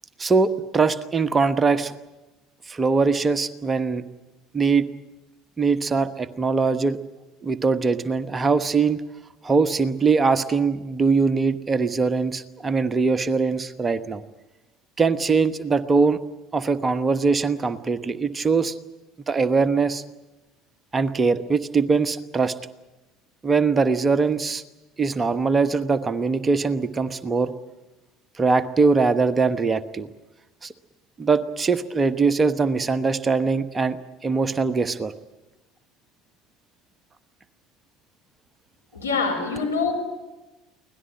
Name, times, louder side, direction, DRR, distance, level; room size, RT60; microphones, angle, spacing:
voice 1, 0.2-1.9 2.7-4.0 4.5-4.9 5.6-7.0 7.4-9.0 9.4-14.2 15.0-16.2 16.5-18.7 19.3-20.0 20.9-22.5 23.4-24.6 25.0-27.5 28.4-30.1 30.6-30.7 31.2-35.1, right 4 dB, 25° right, 11 dB, 1.1 m, -22 dB
voice 2, 38.9-39.9, left 4 dB, 85° left, 0 dB, 4.7 m, -24 dB
24.0 x 18.0 x 8.7 m, 1.1 s
figure-of-eight pair, 65°, 0 cm